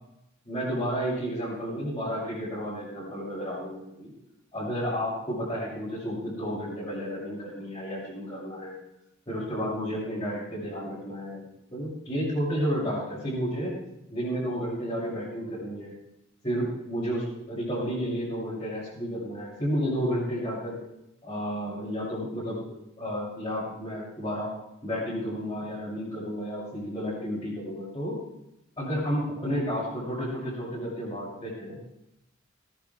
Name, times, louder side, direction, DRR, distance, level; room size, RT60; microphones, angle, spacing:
voice 1, 0.4-4.1 4.5-8.8 9.3-13.7 14.1-15.9 16.4-20.8 21.2-22.6 23.0-24.5 24.8-28.2 28.8-31.8, equal, 25° left, -11 dB, 6.9 m, -31 dB
19.5 x 10.5 x 4.8 m, 0.85 s
head